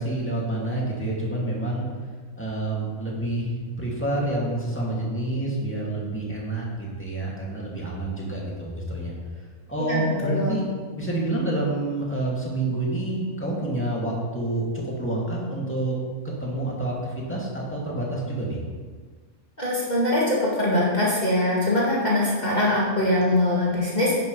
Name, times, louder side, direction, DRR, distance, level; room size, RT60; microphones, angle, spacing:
voice 1, 0.0-1.8 2.4-9.1 9.7-10.6 10.9-16.0 16.2-18.6, right 2 dB, 10° left, -5 dB, 2.4 m, -28 dB
voice 2, 9.8-10.6 19.6-24.1, left 1 dB, 30° left, -6 dB, 2.0 m, -23 dB
10.5 x 10.5 x 3.3 m, 1.5 s
omnidirectional pair, 1.5 m